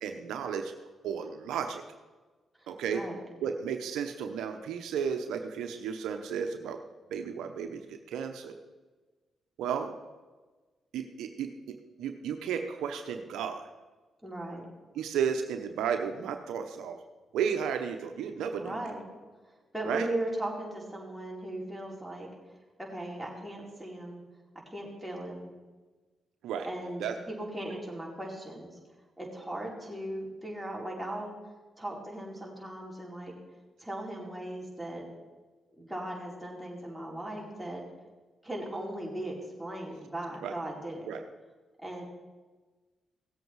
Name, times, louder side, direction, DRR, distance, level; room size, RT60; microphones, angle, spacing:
voice 1, 0.0-0.7 1.0-1.8 2.7-3.0 3.4-6.8 7.1-8.6 9.6-9.9 10.9-13.7 14.9-17.0 17.3-18.8 19.8-20.1 26.4-26.7 27.0-27.2 40.4-40.5 41.1-41.2, right 7 dB, 80° right, 6 dB, 0.8 m, -33 dB
voice 2, 2.6-3.2 14.2-14.7 18.6-19.0 19.7-22.3 22.8-24.2 24.7-25.5 26.6-27.0 27.3-28.7 29.2-31.3 31.8-33.3 33.8-35.1 35.8-37.8 38.4-41.1 41.8-42.0, right 1 dB, ahead, -3 dB, 4.5 m, -38 dB
17.0 x 7.9 x 4.7 m, 1.3 s
supercardioid pair, 50°, 0 cm